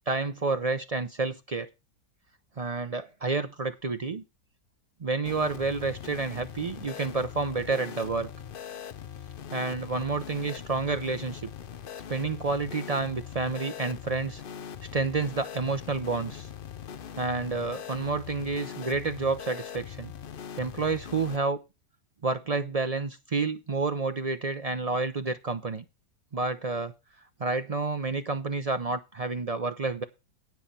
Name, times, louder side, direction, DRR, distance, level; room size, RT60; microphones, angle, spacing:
voice 1, 0.1-1.7 2.6-4.2 5.0-8.3 9.5-11.4 12.1-14.4 14.9-16.5 17.2-20.1 20.6-21.6 22.2-25.8 26.3-26.9 27.4-30.0, right 3 dB, 60° right, 0.3 m, -29 dB
sound 1, 5.2-21.4, left 8 dB, 60° left, 0.5 m, -42 dB
10.5 x 9.3 x 4.2 m
omnidirectional pair, 1.7 m